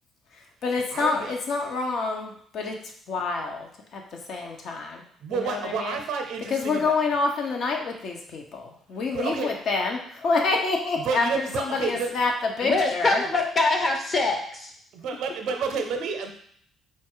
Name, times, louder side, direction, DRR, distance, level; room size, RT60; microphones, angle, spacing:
voice 1, 0.3-2.8 3.1-4.0 4.3-5.0 5.3-6.0 6.5-13.2, left 4 dB, 65° left, 2 dB, 0.9 m, -27 dB
voice 2, 0.9-1.3 5.2-6.8 9.1-9.5 11.0-12.1 14.9-16.3, right 5 dB, 75° right, 4 dB, 0.6 m, -30 dB
voice 3, 12.6-14.7, left 3 dB, 35° left, 3 dB, 0.9 m, -24 dB
4.4 x 2.4 x 4.6 m, 0.63 s
cardioid pair, 105°, 0 cm